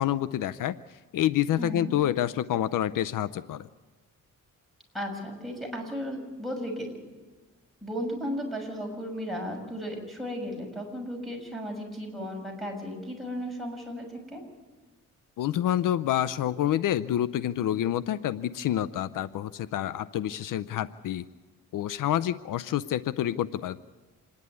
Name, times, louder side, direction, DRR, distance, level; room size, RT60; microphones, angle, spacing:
voice 1, 0.0-3.7 15.4-21.3 21.7-23.8, left 12 dB, 75° left, 15 dB, 0.6 m, -28 dB
voice 2, 1.6-1.9 4.9-6.9 7.8-14.4, equal, ahead, 1 dB, 6.5 m, -35 dB
27.0 x 10.5 x 9.5 m, 1.3 s
cardioid pair, 95°, 32 cm